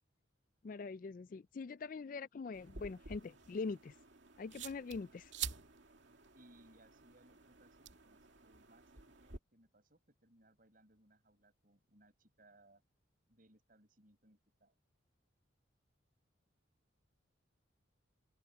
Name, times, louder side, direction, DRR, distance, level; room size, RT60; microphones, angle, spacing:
voice 1, 0.6-3.9 4.4-5.3, left 4 dB, 40° left, 0.3 m, -43 dB
sound 1, 2.5-9.4, right 7 dB, 60° right, 2.4 m, -49 dB
voice 2, 6.3-12.8 13.3-14.8, right 1 dB, 45° right, 7.0 m, -67 dB
open air
head